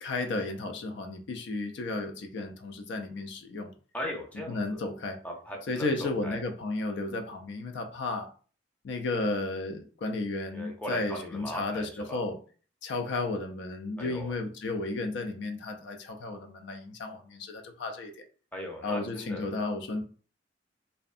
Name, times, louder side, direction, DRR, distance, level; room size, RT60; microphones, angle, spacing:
voice 1, 0.0-3.7 4.5-5.2 5.7-8.3 8.8-12.4 12.8-18.1 18.8-20.0, left 2 dB, 65° left, 5 dB, 0.4 m, -33 dB
voice 2, 3.9-4.8 5.2-6.4 10.5-12.2 14.0-14.4 18.5-19.5, equal, 10° left, 0 dB, 0.5 m, -38 dB
2.6 x 2.2 x 2.4 m, 0.40 s
head